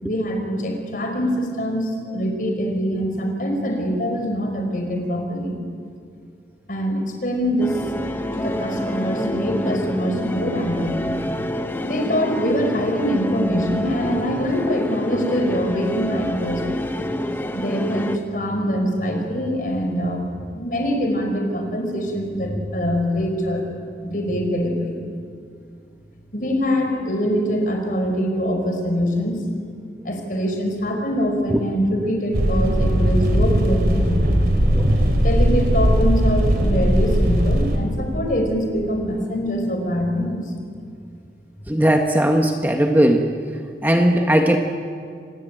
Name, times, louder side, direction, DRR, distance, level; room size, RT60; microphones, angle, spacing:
voice 1, 0.0-5.6 6.7-7.8 8.3-11.1 11.8-16.6 17.5-20.2 20.5-23.7 24.0-25.0 26.3-29.4 30.0-34.2 34.6-40.5, equal, 50° left, 3 dB, 5.1 m, -24 dB
sound 1, 7.6-18.2, left 1 dB, 10° left, 1.0 m, -27 dB
sound 2, 32.3-37.8, equal, 60° right, 3.5 m, -18 dB
voice 2, 41.7-43.3 43.8-44.6, right 1 dB, 10° right, 3 dB, 1.2 m, -18 dB
26.0 x 20.5 x 9.1 m, 2.2 s
head